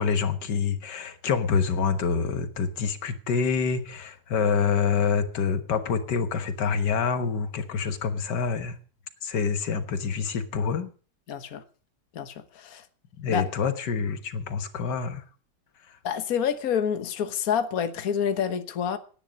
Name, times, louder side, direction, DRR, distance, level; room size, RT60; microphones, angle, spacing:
voice 1, 0.0-8.8 9.2-10.9 13.2-15.2 15.9-16.0, left 6 dB, 85° left, 2.0 m, -26 dB
voice 2, 11.3-11.6 12.1-12.8 13.3-13.5 16.0-19.0, left 8 dB, 60° left, 1.6 m, -28 dB
18.0 x 10.0 x 5.3 m
omnidirectional pair, 1.8 m